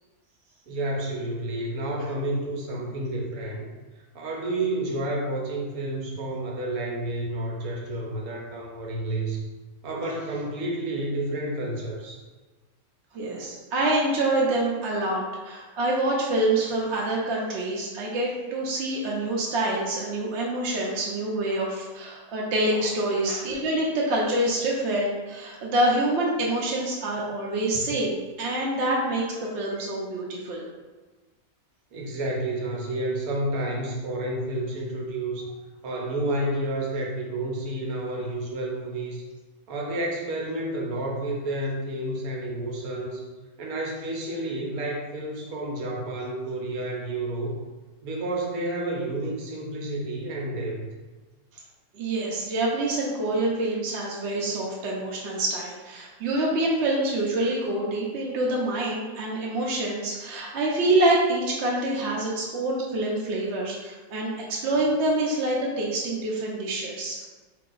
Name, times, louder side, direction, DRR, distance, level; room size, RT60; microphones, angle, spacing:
voice 1, 0.7-3.7 4.1-9.4 9.8-12.2 22.7-22.9 23.4-23.7 31.9-35.5 35.8-39.2 39.7-43.2 43.6-47.6 48.0-50.9, right 1 dB, 80° right, -1 dB, 1.3 m, -30 dB
voice 2, 13.1-30.7 51.9-67.2, right 1 dB, 60° right, -3 dB, 0.8 m, -26 dB
3.3 x 2.8 x 3.8 m, 1.3 s
omnidirectional pair, 1.5 m